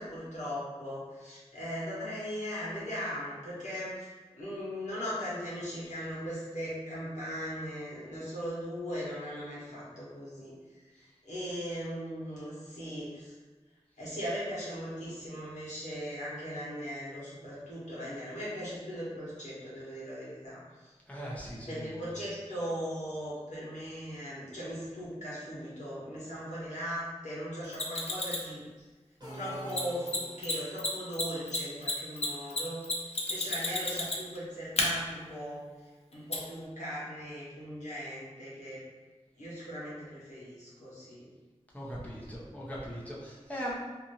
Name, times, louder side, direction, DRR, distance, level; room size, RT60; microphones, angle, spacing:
voice 1, 0.0-13.3 14.0-20.9 21.7-28.6 29.3-32.8 33.3-35.7 36.1-38.8 39.3-41.3, equal, 90° left, -9 dB, 1.1 m, -39 dB
voice 2, 21.1-22.0 41.7-43.8, equal, 10° left, -5 dB, 0.6 m, -39 dB
Mechanisms, 27.7-28.5 29.7-29.8 30.1-30.2 30.4-30.5 30.8-34.4 34.8-34.9 36.3-36.4, left 2 dB, 60° left, 0.5 m, -31 dB
sound 1, 29.2-30.8, right 1 dB, 35° right, 0.9 m, -45 dB
2.6 x 2.5 x 2.8 m, 1.3 s
wide cardioid pair, 50°, 12 cm